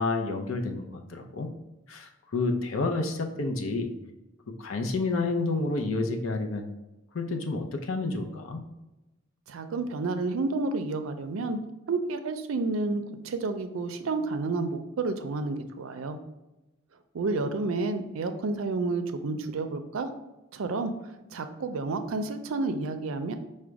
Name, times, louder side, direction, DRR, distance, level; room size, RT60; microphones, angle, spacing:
voice 1, 0.0-1.5 1.9-3.9 4.5-6.7 7.1-8.6, left 3 dB, 80° left, 4 dB, 0.6 m, -29 dB
voice 2, 9.5-11.6 11.9-16.2 17.1-20.1 20.5-20.9 21.3-23.3, right 3 dB, 80° right, 8 dB, 0.5 m, -30 dB
5.0 x 2.2 x 4.6 m, 1.0 s
head